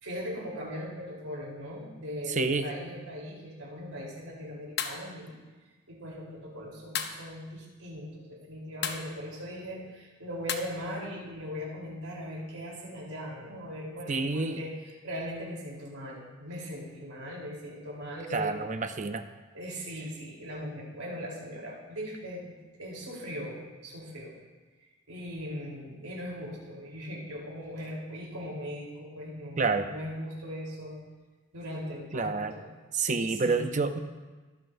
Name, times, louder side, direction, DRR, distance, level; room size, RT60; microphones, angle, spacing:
voice 1, 0.0-5.3 5.9-18.5 19.5-24.4 25.1-31.0 31.5-32.6 32.9-33.6, equal, 80° right, -3 dB, 3.8 m, -39 dB
sound 1, 4.8-5.0 6.9-7.2 8.8-9.1 10.5-10.6, left 7 dB, 50° left, 0.8 m, -32 dB
voice 2, 14.1-14.6 18.3-19.2 29.6-29.9 32.1-32.5 32.9-34.0, right 4 dB, 35° right, 8 dB, 0.6 m, -28 dB
23.5 x 7.9 x 2.6 m, 1.3 s
head